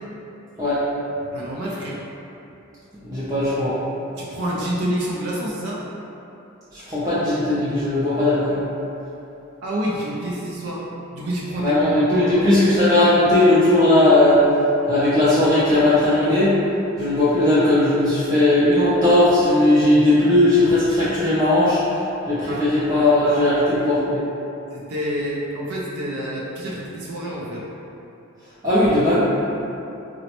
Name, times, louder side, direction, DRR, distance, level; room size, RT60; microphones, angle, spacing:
voice 1, 1.3-2.0 4.2-5.8 9.6-10.8 11.1-12.5 22.5-23.6 24.7-27.6, equal, 90° right, -5 dB, 0.4 m, -28 dB
voice 2, 3.1-3.7 6.9-8.6 11.6-14.4 14.9-16.5 17.0-21.8 22.3-24.2 28.6-29.1, left 1 dB, 15° right, -12 dB, 0.4 m, -17 dB
3.9 x 2.1 x 2.9 m, 2.9 s
head